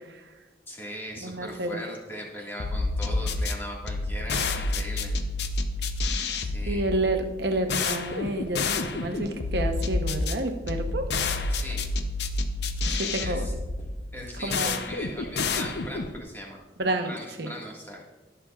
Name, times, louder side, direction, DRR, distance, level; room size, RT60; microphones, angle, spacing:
voice 1, 0.7-5.1 6.4-6.8 11.5-11.9 12.9-13.5 14.1-16.6 17.0-18.1, equal, 10° left, -3 dB, 1.7 m, -39 dB
voice 2, 1.2-1.8 6.7-11.1 12.8-13.5 14.4-14.8 16.8-17.5, right 1 dB, 70° right, 5 dB, 0.9 m, -29 dB
sound 1, 2.6-16.2, left 3 dB, 70° left, 0.6 m, -29 dB
19.0 x 6.9 x 2.4 m, 1.2 s
head